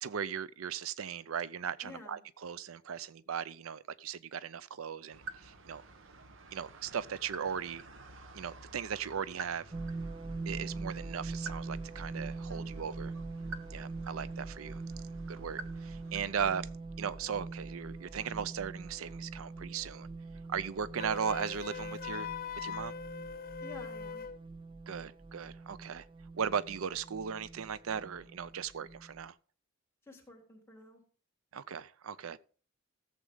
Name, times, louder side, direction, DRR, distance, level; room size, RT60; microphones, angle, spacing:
voice 1, 0.0-5.8 6.5-7.8 8.3-9.7 10.5-13.1 13.7-14.8 15.3-16.7 17.0-20.1 20.5-22.3 22.6-22.9 24.9-26.1 26.4-29.3 31.5-32.4, right 7 dB, 85° right, 0.5 m, -37 dB
voice 2, 1.8-2.2 12.5-13.1 23.6-24.3 30.0-31.0, left 3 dB, 10° left, 3.6 m, -51 dB
sound 1, 5.1-16.6, right 4 dB, 65° right, 1.1 m, -50 dB
sound 2, 9.7-29.3, right 3 dB, 25° right, 0.5 m, -43 dB
Wind instrument woodwind instrument, 21.0-24.4, left 7 dB, 45° left, 0.6 m, -41 dB
15.5 x 7.5 x 3.8 m
head